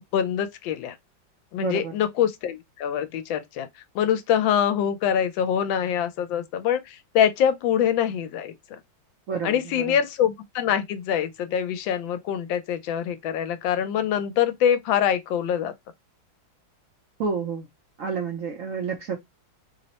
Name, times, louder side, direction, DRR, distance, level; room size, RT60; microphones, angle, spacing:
voice 1, 0.1-0.9 1.5-3.7 3.9-8.8 9.4-15.7, left 9 dB, 80° left, 1.3 m, -24 dB
voice 2, 1.6-1.9 9.3-10.0 17.2-17.7 18.0-19.2, right 5 dB, 65° right, 0.8 m, -29 dB
3.3 x 2.0 x 4.0 m
omnidirectional pair, 2.1 m